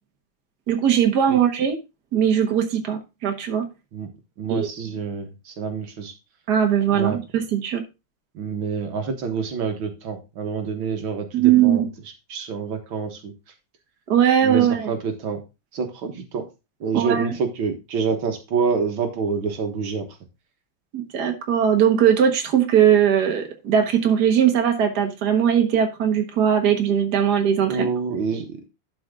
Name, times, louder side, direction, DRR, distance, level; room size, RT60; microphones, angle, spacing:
voice 1, 0.7-1.8 2.1-3.7 4.5-4.7 6.5-7.8 11.3-11.9 14.1-14.9 16.9-17.3 20.9-27.9, right 9 dB, 55° right, 1.9 m, -19 dB
voice 2, 4.4-6.1 6.9-7.2 8.3-11.9 12.3-13.3 14.4-15.4 15.7-16.4 16.8-20.2 27.6-28.7, right 5 dB, 80° right, 2.2 m, -27 dB
11.5 x 5.2 x 3.7 m
omnidirectional pair, 2.2 m